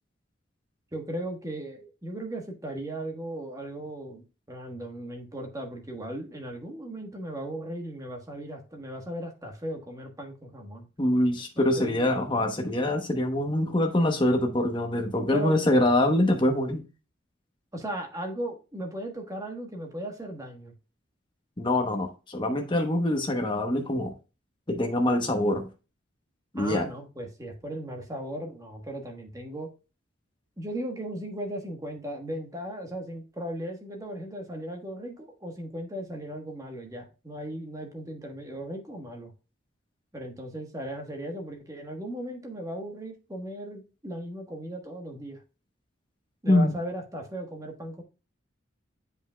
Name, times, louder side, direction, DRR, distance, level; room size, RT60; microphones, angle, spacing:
voice 1, 0.9-10.9 11.6-12.1 15.3-15.6 17.7-20.7 26.6-29.7 30.6-39.3 40.1-45.4 46.4-48.0, right 1 dB, 15° right, 3 dB, 1.3 m, -37 dB
voice 2, 11.0-16.8 21.6-24.1 24.7-25.7 26.5-26.9 46.5-46.8, left 1 dB, 25° left, 4 dB, 0.9 m, -24 dB
8.0 x 5.3 x 2.2 m, 0.31 s
head